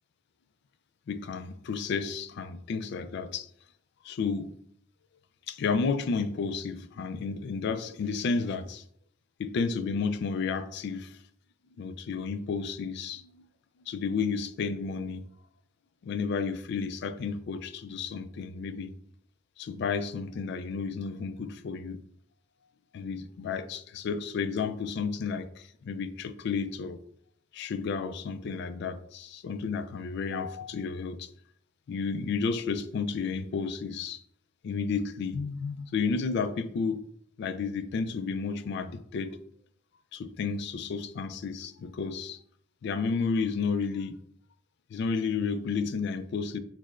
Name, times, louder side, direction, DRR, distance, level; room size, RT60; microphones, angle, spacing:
voice 1, 1.1-3.5 4.0-4.6 5.5-8.8 9.4-11.2 11.8-13.4 13.9-15.2 16.0-18.9 19.6-22.0 22.9-27.0 27.5-31.3 31.9-34.2 34.6-37.0 37.4-39.4 40.1-42.4 42.8-44.2 44.9-46.6, left 5 dB, 60° left, 0.3 m, -32 dB
6.2 x 2.1 x 2.4 m
head